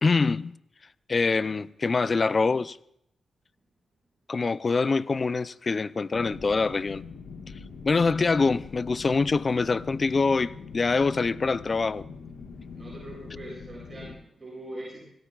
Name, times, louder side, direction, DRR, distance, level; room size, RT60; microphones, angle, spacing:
voice 1, 0.0-0.6 1.1-2.8 4.3-7.0 7.8-12.0, left 4 dB, 45° left, 0.5 m, -24 dB
sound 1, 6.1-14.1, left 5 dB, 80° left, 1.7 m, -43 dB
voice 2, 12.6-15.0, right 1 dB, 35° right, 7.9 m, -42 dB
26.5 x 18.5 x 2.5 m
cardioid pair, 55°, 0 cm